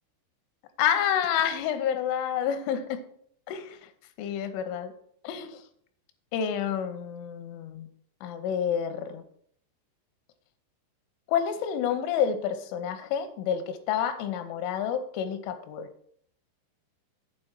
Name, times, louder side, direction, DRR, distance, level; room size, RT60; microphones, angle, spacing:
voice 1, 0.8-3.0 3.5-3.9 4.2-4.9 5.2-5.6 6.3-7.9 8.2-9.2 11.3-15.9, left 8 dB, 90° left, 9 dB, 3.3 m, -29 dB
7.7 x 4.8 x 7.3 m, 0.64 s
omnidirectional pair, 5.4 m